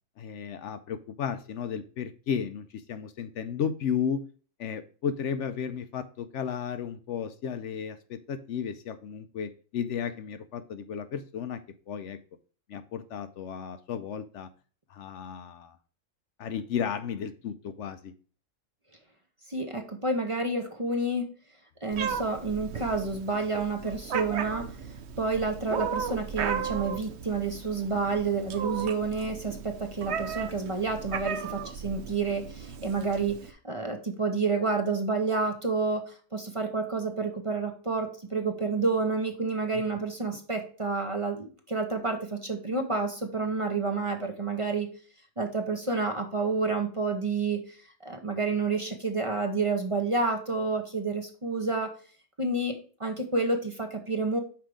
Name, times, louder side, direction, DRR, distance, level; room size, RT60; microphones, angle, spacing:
voice 1, 0.2-4.2 4.6-11.6 11.9-12.2 12.7-14.5 14.9-15.8 16.4-18.1 39.7-39.8, left 7 dB, 70° left, 10 dB, 0.9 m, -34 dB
voice 2, 19.5-21.2 21.8-24.7 25.2-33.4 33.6-44.9 45.4-47.8 48.0-51.9 52.4-52.7 53.0-54.4, right 3 dB, 25° right, 4 dB, 1.0 m, -29 dB
Meow, 21.9-33.5, right 7 dB, 60° right, 0.9 m, -36 dB
5.9 x 4.7 x 4.9 m, 0.39 s
omnidirectional pair, 1.4 m